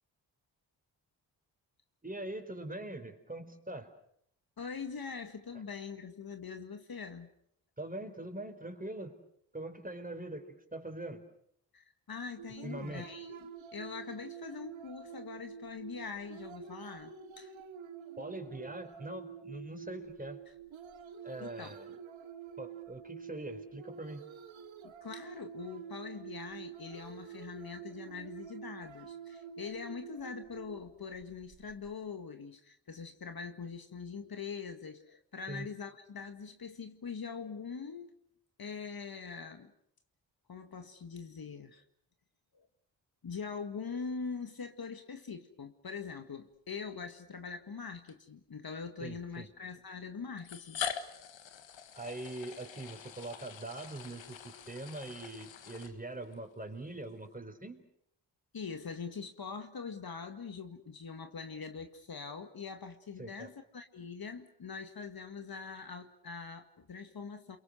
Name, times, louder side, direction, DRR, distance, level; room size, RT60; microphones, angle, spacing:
voice 1, 2.0-3.9 7.8-9.2 9.5-11.2 12.6-13.1 18.2-20.4 21.2-21.9 22.6-24.3 35.5-35.7 49.0-49.5 51.9-57.8 63.2-63.5, right 2 dB, 15° right, 6 dB, 4.6 m, -43 dB
voice 2, 4.6-7.3 11.7-17.5 21.4-21.8 24.8-38.2 38.6-39.7 40.5-41.8 42.5-42.7 43.2-50.8 58.5-67.6, left 5 dB, 50° left, 7 dB, 2.0 m, -43 dB
sound 1, 12.4-31.9, right 8 dB, 75° right, 1.8 m, -48 dB
sound 2, 46.9-47.1 48.1-48.2 49.3-49.4 50.4-56.4, left 8 dB, 70° left, 1.7 m, -43 dB
30.0 x 23.5 x 6.6 m, 0.69 s
supercardioid pair, 45°, 48 cm